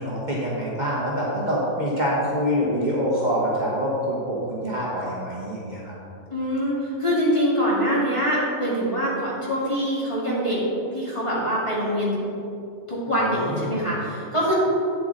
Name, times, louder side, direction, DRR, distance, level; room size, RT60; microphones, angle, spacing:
voice 1, 0.0-5.9 13.1-13.9, equal, 35° right, -6 dB, 1.3 m, -26 dB
voice 2, 6.3-10.6 10.9-12.1 12.9-14.5, equal, 20° left, -8 dB, 2.2 m, -24 dB
8.5 x 7.3 x 3.9 m, 2.7 s
omnidirectional pair, 1.4 m